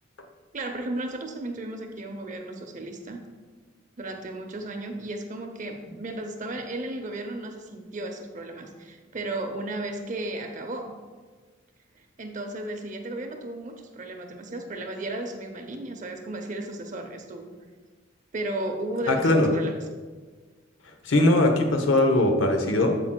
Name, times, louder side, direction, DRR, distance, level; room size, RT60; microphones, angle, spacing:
voice 1, 0.5-3.2 4.0-11.0 12.0-17.5 18.3-19.8, right 1 dB, 40° right, 5 dB, 0.6 m, -34 dB
voice 2, 19.1-19.5 21.0-23.0, left 2 dB, 75° left, 4 dB, 0.8 m, -20 dB
7.9 x 7.6 x 2.2 m, 1.4 s
head